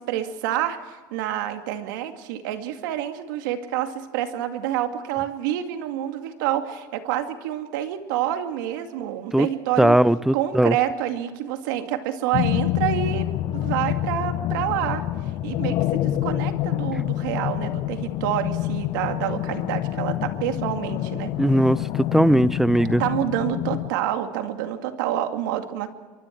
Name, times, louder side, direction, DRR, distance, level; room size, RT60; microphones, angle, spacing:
voice 1, 0.0-10.0 10.3-13.3 13.5-15.0 15.4-21.3 23.0-25.9, right 11 dB, 80° right, 6 dB, 2.3 m, -28 dB
voice 2, 9.8-10.8 21.4-21.8 22.1-23.0, right 1 dB, 5° right, 18 dB, 0.5 m, -18 dB
sound 1, 12.3-23.9, left 14 dB, 55° left, 1.1 m, -27 dB
25.0 x 23.0 x 4.6 m, 1.4 s
supercardioid pair, 135°, 10 cm